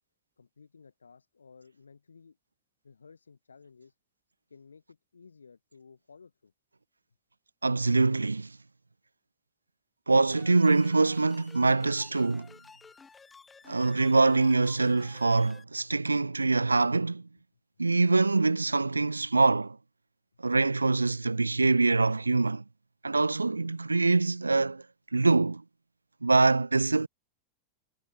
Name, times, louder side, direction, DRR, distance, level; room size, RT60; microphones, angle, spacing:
voice 1, 0.4-2.4 2.8-4.0 4.5-6.5, left 5 dB, 75° left, 7.8 m, -55 dB
voice 2, 7.6-8.5 10.1-12.5 13.7-17.2 17.8-19.8 20.4-22.6 23.0-24.8 25.1-25.6 26.2-27.1, right 3 dB, 80° right, 0.6 m, -24 dB
sound 1, 10.3-15.6, left 5 dB, 15° left, 5.2 m, -54 dB
figure-of-eight pair, 90°, 0 cm